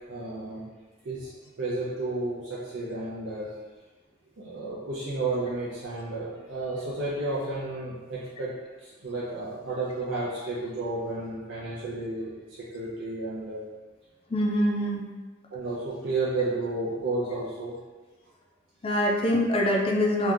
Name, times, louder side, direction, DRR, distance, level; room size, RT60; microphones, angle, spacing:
voice 1, 0.1-0.6 1.0-1.3 1.6-3.5 4.4-8.5 8.8-12.3 12.7-13.7 15.5-17.8, right 2 dB, 65° right, -8 dB, 0.6 m, -32 dB
voice 2, 14.3-15.1 18.8-20.3, left 1 dB, 30° left, 0 dB, 0.4 m, -24 dB
2.9 x 2.4 x 3.6 m, 1.3 s
head